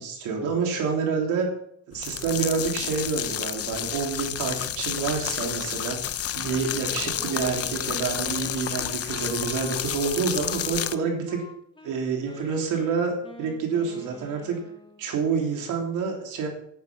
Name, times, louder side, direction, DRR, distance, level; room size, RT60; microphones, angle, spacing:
voice 1, 0.0-1.5 1.9-6.0 6.3-11.4 11.8-14.6 15.0-16.5, right 5 dB, 90° right, 1 dB, 3.3 m, -28 dB
sound 1, 1.9-11.0, left 10 dB, 50° left, 0.7 m, -30 dB
Wind instrument woodwind instrument, 6.6-15.1, left 2 dB, 15° left, 1.8 m, -46 dB
10.5 x 9.7 x 6.2 m, 0.68 s
cardioid pair, 90°, 30 cm